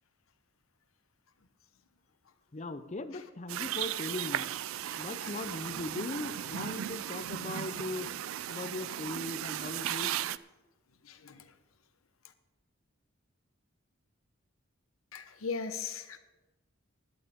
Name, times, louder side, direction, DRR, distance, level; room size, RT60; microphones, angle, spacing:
voice 1, 2.5-4.5 5.0-8.1 8.5-10.2, left 2 dB, 35° left, 11 dB, 0.6 m, -39 dB
sound 1, 3.5-10.4, right 11 dB, 80° right, 0.4 m, -36 dB
voice 2, 4.8-5.4 7.6-7.7 11.0-11.5 15.1-16.2, left 5 dB, 90° left, 9 dB, 0.9 m, -40 dB
17.0 x 11.5 x 3.6 m, 1.1 s
head